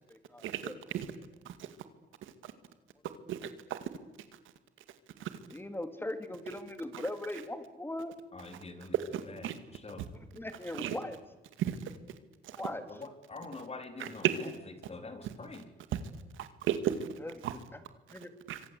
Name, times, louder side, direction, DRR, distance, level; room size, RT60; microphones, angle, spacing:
voice 1, 0.1-0.7 5.5-8.1 10.1-11.2 12.5-12.8 17.2-17.3 18.1-18.3, left 1 dB, 10° left, 8 dB, 3.4 m, -39 dB
voice 2, 3.3-3.9 5.2-5.3 8.9-9.5 10.7-11.0 11.6-11.8 12.4-12.6 14.0-14.4 15.2-15.3 15.9-16.0 16.4-17.1 18.5-18.6, right 10 dB, 85° right, 11 dB, 2.2 m, -33 dB
voice 3, 8.3-9.0 9.3-10.1 12.9-14.5 14.9-15.7, left 3 dB, 30° left, 7 dB, 3.9 m, -45 dB
27.0 x 24.5 x 8.4 m, 1.0 s
cardioid pair, 90°, 20 cm